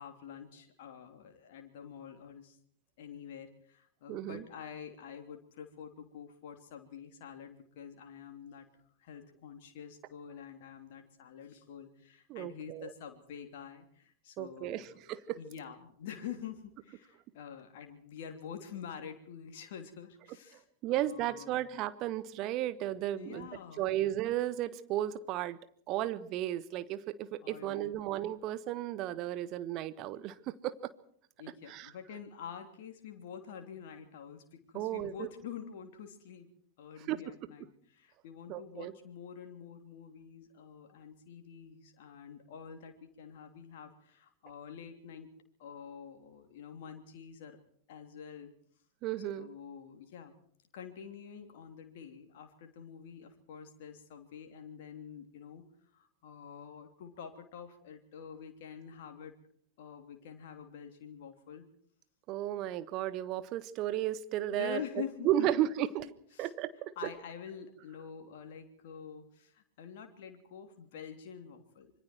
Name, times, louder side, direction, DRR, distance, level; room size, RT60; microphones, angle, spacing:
voice 1, 0.0-2.6 3.0-8.7 9.0-21.7 23.1-23.9 27.4-27.9 31.4-36.5 36.8-45.3 45.6-47.6 47.9-48.5 49.4-50.4 50.7-55.7 55.9-59.3 59.8-61.7 64.5-65.5 66.3-66.5 67.0-71.9, left 8 dB, 55° left, 5 dB, 3.0 m, -47 dB
voice 2, 4.1-4.4 12.3-12.9 14.4-15.4 20.8-23.5 23.8-25.6 25.9-30.9 31.7-31.9 34.7-35.3 37.1-37.2 38.5-38.9 49.0-49.5 62.3-64.8 65.2-66.0 66.4-66.9, right 13 dB, 40° right, 14 dB, 1.3 m, -34 dB
26.0 x 24.0 x 4.5 m, 0.62 s
figure-of-eight pair, 90°, 0 cm